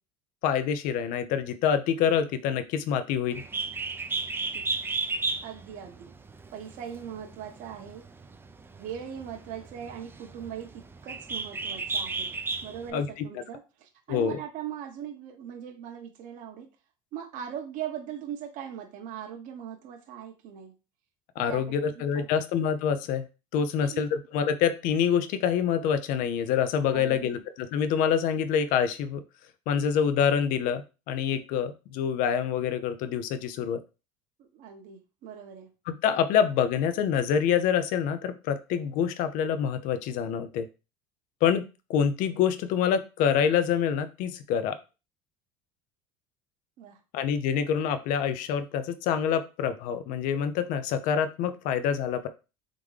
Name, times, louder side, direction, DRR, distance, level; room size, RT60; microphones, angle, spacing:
voice 1, 0.4-3.4 12.9-13.2 14.1-14.4 21.4-23.3 23.5-29.2 29.7-33.8 35.9-40.7 41.4-41.6 41.9-44.8 47.1-52.3, left 8 dB, 60° left, 10 dB, 0.6 m, -26 dB
Bird, 3.3-12.9, right 4 dB, 15° right, 0.5 m, -34 dB
voice 2, 5.4-6.1 6.5-8.1 8.8-12.3 12.6-16.7 17.1-20.7 21.4-22.3 23.5-24.1 26.9-27.4 34.4-35.7 46.8-47.0, right 9 dB, 55° right, 2 dB, 1.0 m, -40 dB
3.7 x 3.5 x 3.2 m, 0.30 s
supercardioid pair, 115°, 16 cm